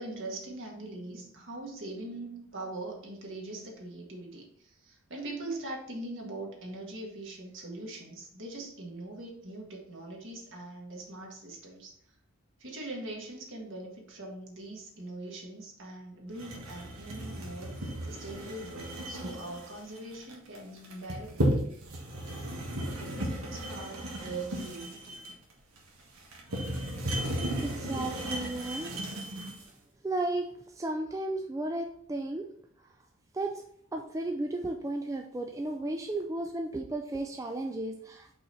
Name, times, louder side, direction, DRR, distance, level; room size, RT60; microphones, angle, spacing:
voice 1, 0.0-11.9 12.6-21.7 23.5-25.2, right 2 dB, 60° right, 0 dB, 1.6 m, -42 dB
sound 1, 16.4-29.7, right 1 dB, 80° right, 1.6 m, -35 dB
voice 2, 27.6-29.5 30.0-32.5 32.8-32.9 33.3-33.6 33.9-38.3, right 2 dB, 15° right, 3 dB, 0.3 m, -34 dB
5.5 x 4.3 x 4.0 m, 0.66 s
head